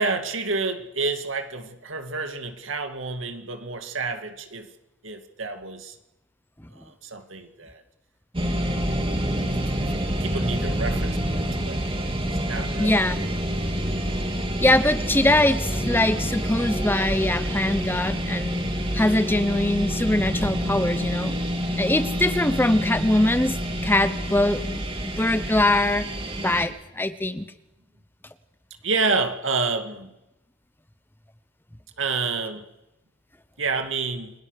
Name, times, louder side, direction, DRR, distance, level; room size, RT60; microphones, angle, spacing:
voice 1, 0.0-4.7 5.0-5.9 6.7-7.8 8.5-8.9 9.5-13.0 28.8-30.1 32.0-32.6 33.6-34.3, right 4 dB, 75° right, 6 dB, 2.4 m, -29 dB
sound 1, 8.3-26.7, equal, 25° right, 2.8 m, -27 dB
voice 2, 12.8-13.3 14.6-21.4 21.8-26.0 26.4-27.4, left 1 dB, 10° left, 12 dB, 0.8 m, -22 dB
29.5 x 22.0 x 6.7 m, 0.98 s
head